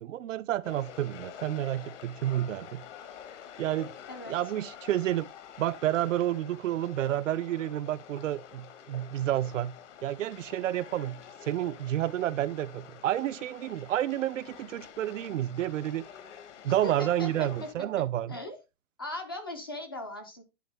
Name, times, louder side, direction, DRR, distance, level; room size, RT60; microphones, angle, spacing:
voice 1, 0.0-2.8 3.6-3.9 4.3-5.3 5.6-9.7 10.0-16.1 16.6-18.4, right 12 dB, 65° right, 0.5 m, -30 dB
sound 1, 0.6-17.7, left 9 dB, 55° left, 1.3 m, -48 dB
voice 2, 16.8-17.3 18.3-18.6 19.0-20.4, left 1 dB, 20° left, 0.4 m, -38 dB
10.5 x 3.7 x 3.4 m
hypercardioid pair, 170°, 42 cm